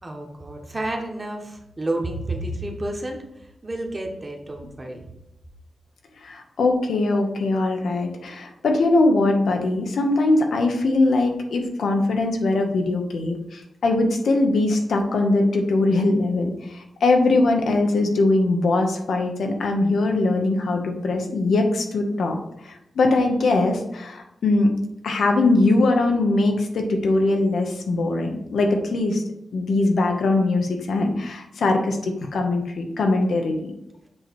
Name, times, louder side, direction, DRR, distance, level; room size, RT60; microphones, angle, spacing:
voice 1, 0.0-5.0, right 1 dB, 25° right, 1 dB, 1.1 m, -30 dB
voice 2, 6.2-22.4 22.6-24.7 25.0-29.2 29.5-33.7, left 2 dB, 85° left, 3 dB, 1.0 m, -21 dB
7.6 x 3.1 x 4.5 m, 0.85 s
wide cardioid pair, 135°, 0 cm